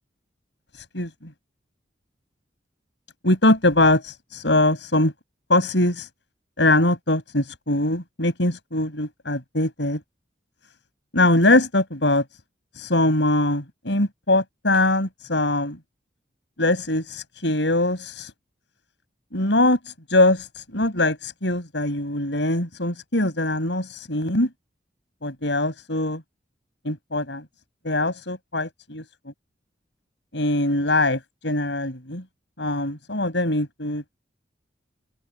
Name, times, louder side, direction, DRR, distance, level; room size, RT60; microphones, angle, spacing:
voice 1, 3.2-5.1 5.5-6.1 6.6-10.0 11.1-12.2 12.8-15.8 16.6-18.3 19.3-24.5 25.2-26.2 26.8-27.4 27.8-29.0 30.3-32.2 32.6-34.0, left 2 dB, 75° left, 6.1 m, -22 dB
open air
head